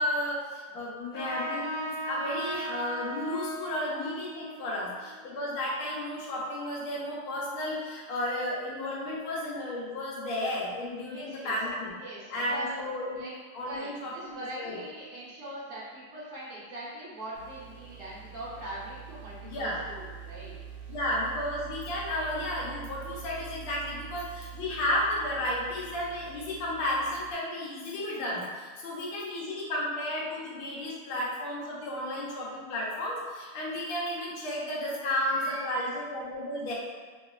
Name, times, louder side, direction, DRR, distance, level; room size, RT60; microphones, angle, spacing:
voice 1, 0.0-11.9 12.3-13.2 13.5-14.8 19.4-19.8 20.9-36.7, left 1 dB, 75° left, -5 dB, 1.6 m, -33 dB
Trumpet, 1.1-6.1, right 1 dB, 40° left, 1.3 m, -38 dB
voice 2, 11.0-11.5 12.0-12.7 13.1-13.3 13.6-20.6 35.2-36.0, right 1 dB, 50° right, -9 dB, 1.0 m, -42 dB
sound 1, 17.3-27.3, right 8 dB, 75° right, 1.2 m, -45 dB
3.4 x 3.0 x 2.4 m, 1.5 s
omnidirectional pair, 2.4 m